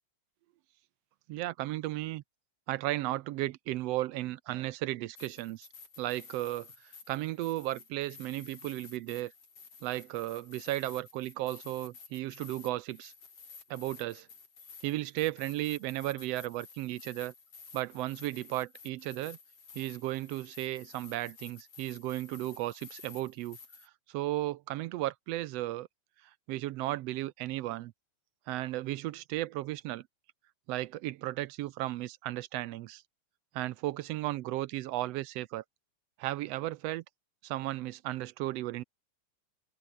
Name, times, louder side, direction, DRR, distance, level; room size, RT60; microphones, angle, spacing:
voice 1, 1.3-2.2 2.7-5.7 6.0-9.3 9.8-13.1 13.7-14.3 14.8-17.3 17.7-19.4 19.7-23.6 24.1-25.9 26.5-27.9 28.5-30.0 30.7-33.0 33.5-35.6 36.2-37.0 37.4-38.8, right 16 dB, 75° right, 1.6 m, -35 dB
sound 1, 5.2-23.9, left 5 dB, 55° left, 5.0 m, -53 dB
omnidirectional pair, 3.3 m